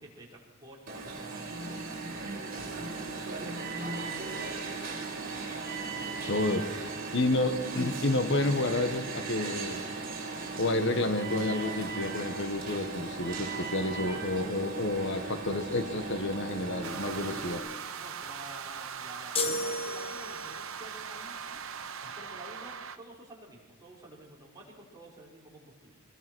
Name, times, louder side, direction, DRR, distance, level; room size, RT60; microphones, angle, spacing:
voice 1, 0.0-4.3 18.0-21.6 22.0-26.0, right 1 dB, 20° right, -4 dB, 5.5 m, -51 dB
Alarm, 0.9-17.6, right 4 dB, 45° right, 4.7 m, -37 dB
voice 2, 6.3-6.7 7.1-9.8 10.6-17.6, left 2 dB, 60° left, 8 dB, 1.5 m, -30 dB
sound 1, 16.8-23.0, right 7 dB, 85° right, 1.3 m, -40 dB
sound 2, 19.3-20.7, left 2 dB, 30° left, 1.6 m, -33 dB
25.5 x 21.0 x 6.3 m, 1.3 s
head